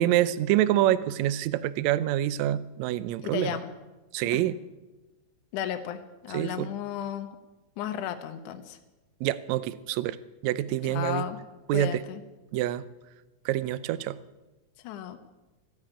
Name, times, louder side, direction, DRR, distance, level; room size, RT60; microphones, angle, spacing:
voice 1, 0.0-3.6 4.1-4.6 6.3-6.7 9.2-10.2 10.4-11.3 11.7-12.0 12.5-12.8 13.5-14.2, right 13 dB, 75° right, 16 dB, 1.8 m, -26 dB
voice 2, 3.2-3.7 4.3-4.4 5.5-7.3 7.8-8.8 10.8-11.4 11.7-12.2 14.8-15.2, left 10 dB, 80° left, 8 dB, 2.4 m, -34 dB
16.0 x 9.9 x 8.9 m, 1.1 s
omnidirectional pair, 3.6 m